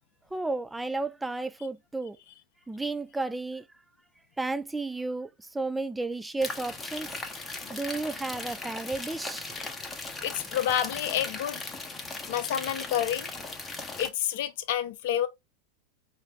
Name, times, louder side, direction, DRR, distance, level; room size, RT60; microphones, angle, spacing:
voice 1, 0.3-2.2 2.7-3.6 4.4-7.1 7.7-9.5, right 3 dB, 5° right, 0.3 m, -32 dB
sound 1, 6.4-14.1, left 3 dB, 15° left, 0.8 m, -38 dB
voice 2, 10.2-11.6 12.3-13.3 14.0-15.3, left 11 dB, 50° left, 0.6 m, -29 dB
4.9 x 2.8 x 3.3 m
figure-of-eight pair, 90°, 0 cm